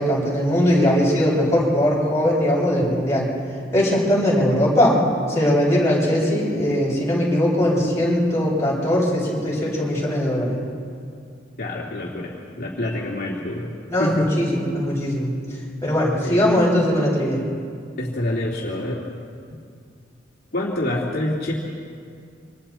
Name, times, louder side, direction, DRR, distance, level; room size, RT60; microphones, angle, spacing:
voice 1, 0.0-3.3 3.7-5.0 5.3-10.6 13.9-15.3 15.8-17.4, equal, 15° left, -6 dB, 7.9 m, -20 dB
voice 2, 11.6-13.7 14.0-14.3 16.2-16.5 18.0-19.1 20.5-21.5, left 1 dB, 50° left, -4 dB, 2.8 m, -26 dB
28.0 x 26.5 x 4.5 m, 2.3 s
head